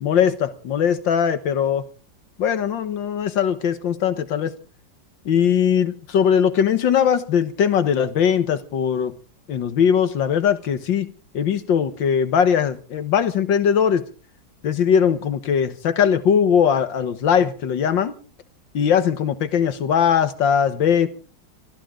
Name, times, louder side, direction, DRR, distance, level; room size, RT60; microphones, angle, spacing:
voice 1, 0.0-1.8 2.4-4.5 5.3-9.1 9.5-14.0 14.6-18.2 18.7-21.1, left 8 dB, 75° left, 2.0 m, -20 dB
23.5 x 14.0 x 3.8 m
omnidirectional pair, 2.0 m